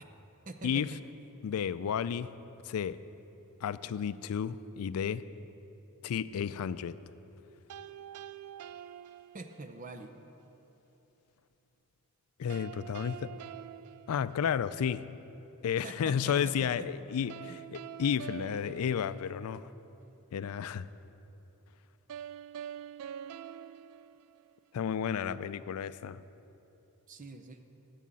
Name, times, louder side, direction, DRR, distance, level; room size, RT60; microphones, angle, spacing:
voice 1, 0.5-1.0 9.3-10.1 15.8-16.3 16.8-16.9 27.1-27.6, right 3 dB, 35° right, 7 dB, 0.6 m, -44 dB
voice 2, 1.4-2.3 2.6-3.0 3.6-5.2 6.0-7.0 12.4-13.3 14.1-15.1 15.6-19.7 20.3-20.9 24.7-26.2, left 7 dB, 75° left, 16 dB, 0.4 m, -32 dB
sound 1, 7.7-9.9 12.5-14.9 17.3-19.8 22.1-24.9, right 9 dB, 80° right, 0.3 m, -46 dB
11.0 x 7.5 x 7.5 m, 3.0 s
head